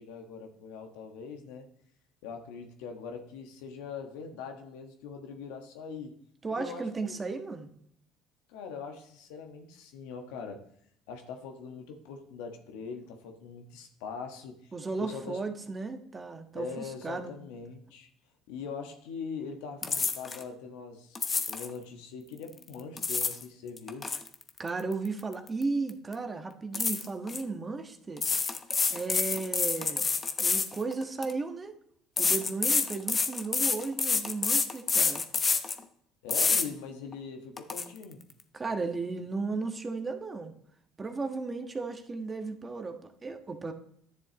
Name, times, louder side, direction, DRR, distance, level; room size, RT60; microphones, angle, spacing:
voice 1, 0.0-1.7 2.2-6.1 6.5-7.2 8.5-10.6 11.1-14.7 15.0-15.4 16.5-18.1 18.5-21.2 21.5-24.1 36.2-38.2, left 5 dB, 80° left, 4 dB, 1.3 m, -42 dB
voice 2, 6.4-7.7 14.7-17.3 24.6-28.2 28.9-30.0 30.4-31.7 32.2-35.2 38.5-40.5 41.0-43.7, right 3 dB, 30° right, 5 dB, 1.3 m, -35 dB
sound 1, 19.8-20.4 21.2-21.7 22.7-23.4 23.8-25.6 25.9-26.1 26.7-27.4 28.2-31.3 32.2-35.8 36.3-36.7 37.1-37.2 37.6-37.8, left 4 dB, 30° left, 0.9 m, -28 dB
10.5 x 7.0 x 3.0 m, 0.67 s
hypercardioid pair, 70°, 0 cm